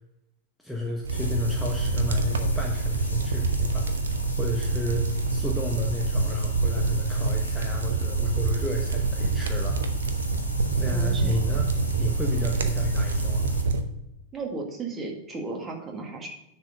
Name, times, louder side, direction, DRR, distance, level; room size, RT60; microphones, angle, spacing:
voice 1, 0.6-5.0 5.3-9.8 10.8-11.7 12.0-13.5, left 2 dB, ahead, -2 dB, 1.2 m, -32 dB
sound 1, 1.0-13.8, right 3 dB, 65° right, 0.8 m, -26 dB
sound 2, 1.1-13.6, left 2 dB, 85° left, 1.4 m, -40 dB
voice 2, 10.9-11.4 14.3-16.3, right 3 dB, 20° right, 1 dB, 2.0 m, -34 dB
10.0 x 4.5 x 6.8 m, 0.83 s
figure-of-eight pair, 90°, 0 cm